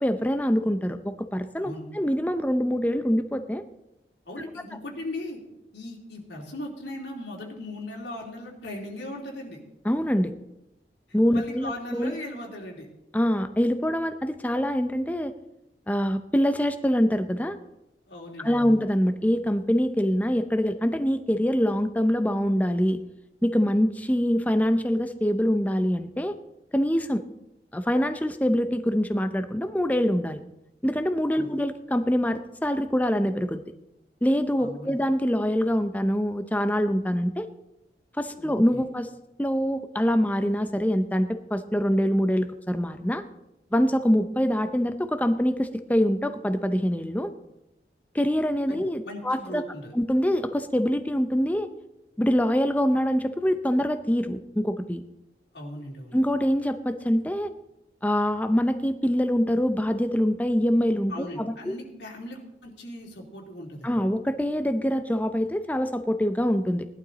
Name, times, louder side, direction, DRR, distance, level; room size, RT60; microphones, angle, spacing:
voice 1, 0.0-3.6 9.9-10.3 11.1-12.2 13.1-15.3 15.9-17.6 18.4-23.0 23.4-26.3 26.7-27.2 27.7-30.4 30.8-33.6 34.2-37.5 38.2-39.1 39.4-43.2 43.7-47.3 48.1-49.6 49.9-51.7 52.2-55.0 56.1-57.5 58.0-61.8 63.8-66.9, equal, 10° left, 9 dB, 0.5 m, -24 dB
voice 2, 4.3-5.4 5.7-9.6 11.3-12.9 18.1-18.7 31.3-31.5 34.6-35.0 38.3-38.8 48.7-49.9 55.5-56.2 61.1-63.9, left 1 dB, 85° left, -1 dB, 3.0 m, -38 dB
17.5 x 11.5 x 4.0 m, 0.88 s
head